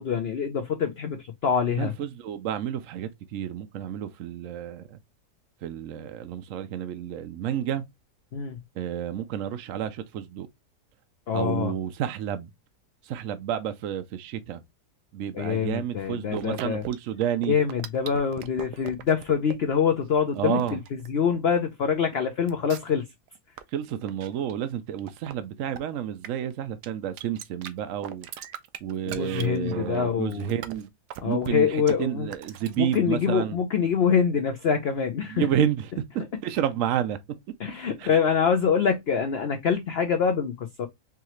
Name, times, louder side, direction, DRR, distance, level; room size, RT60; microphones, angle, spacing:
voice 1, 0.0-1.9 8.3-8.6 11.3-11.7 15.3-16.8 17.5-23.0 29.1-30.5 31.2-32.3 32.8-35.5 37.6-40.9, left 7 dB, 60° left, 0.6 m, -25 dB
voice 2, 1.8-5.0 5.6-7.9 8.8-10.5 11.3-12.5 13.0-14.6 15.1-17.6 20.4-20.8 23.7-28.3 28.8-30.9 31.2-33.6 35.3-37.2 38.0-38.2, right 10 dB, 65° right, 0.8 m, -30 dB
sound 1, 16.3-17.0 17.2-19.6 20.0-21.6 22.1-22.2 22.5-23.0 23.3-23.6 24.0-24.6 25.0-25.3 25.8-25.9 26.2-26.5 26.8-26.9 27.2-27.7 28.0-31.5 31.9-32.0 32.3-33.0, right 11 dB, 80° right, 1.2 m, -40 dB
4.7 x 3.0 x 3.0 m
omnidirectional pair, 1.7 m